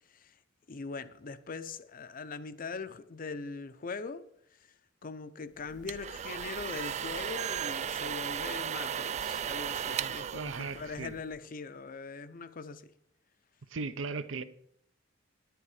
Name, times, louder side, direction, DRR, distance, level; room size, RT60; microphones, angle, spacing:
voice 1, 0.7-4.2 5.0-12.8, left 4 dB, 45° left, 0.6 m, -41 dB
sound 1, 5.7-11.4, right 8 dB, 35° right, 0.3 m, -36 dB
voice 2, 10.0-11.2 13.7-14.4, right 4 dB, 70° right, 0.7 m, -38 dB
10.5 x 10.0 x 4.9 m
head